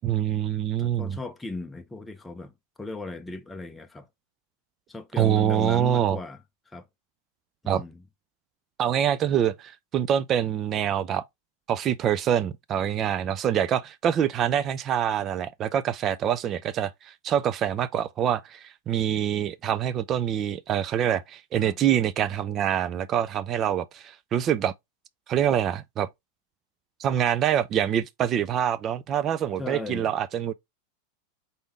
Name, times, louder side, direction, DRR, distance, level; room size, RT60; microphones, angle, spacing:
voice 1, 0.0-1.2 5.2-6.2 7.7-7.8 8.8-11.2 11.7-24.7 25.3-26.1 27.0-30.5, right 10 dB, 35° right, 0.4 m, -25 dB
voice 2, 0.8-2.5 2.8-4.1 4.9-6.4 6.7-6.8 7.6-8.0 21.6-21.8 29.6-30.1, left 3 dB, 10° left, 0.7 m, -36 dB
4.1 x 3.5 x 3.5 m
hypercardioid pair, 90°, 0 cm